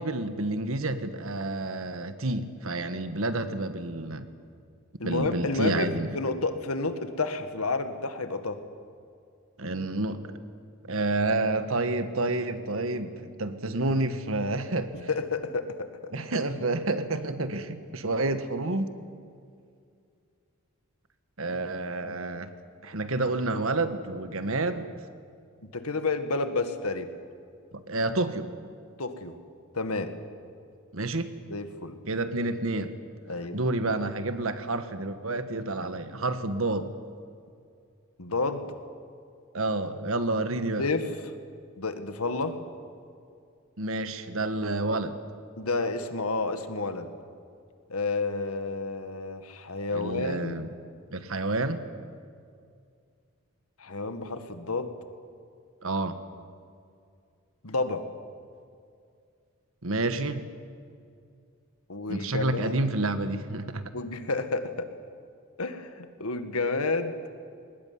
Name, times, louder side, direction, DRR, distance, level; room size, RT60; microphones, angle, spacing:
voice 1, 0.0-4.3 5.0-6.1 9.6-10.4 10.8-14.9 16.1-18.9 21.4-22.5 22.8-24.9 27.9-28.5 30.9-31.3 32.1-32.9 33.5-36.9 39.5-40.9 43.8-45.2 49.9-50.7 51.1-51.8 55.8-56.2 59.8-60.4 62.1-63.9, right 2 dB, 70° right, 10 dB, 1.5 m, -29 dB
voice 2, 5.0-8.6 15.1-15.9 25.7-27.1 29.0-29.4 29.7-30.1 31.5-32.0 33.3-33.6 38.2-38.7 40.8-41.1 41.8-42.6 45.6-47.1 47.9-50.6 53.8-54.9 57.6-58.0 61.9-62.8 63.9-64.9 65.6-67.2, left 3 dB, 90° left, 8 dB, 1.9 m, -30 dB
21.5 x 19.5 x 9.6 m, 2.3 s
head